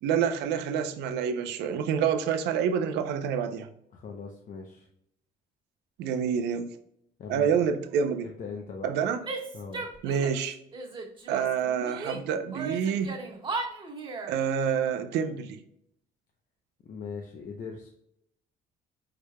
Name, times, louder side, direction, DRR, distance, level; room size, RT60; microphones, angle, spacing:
voice 1, 0.0-3.7 6.0-6.7 7.3-8.3 8.8-9.2 10.0-10.6 11.3-13.2 14.3-15.6, right 7 dB, 85° right, 8 dB, 0.6 m, -27 dB
voice 2, 3.9-4.9 7.2-7.7 8.2-8.9 9.5-9.9 16.8-17.9, left 5 dB, 50° left, 1 dB, 0.7 m, -40 dB
Female speech woman speaking / Yell, 9.2-10.4 10.7-12.2 12.5-14.4, right 3 dB, 30° right, 1.7 m, -36 dB
4.9 x 4.6 x 2.2 m, 0.74 s
cardioid pair, 110°, 17 cm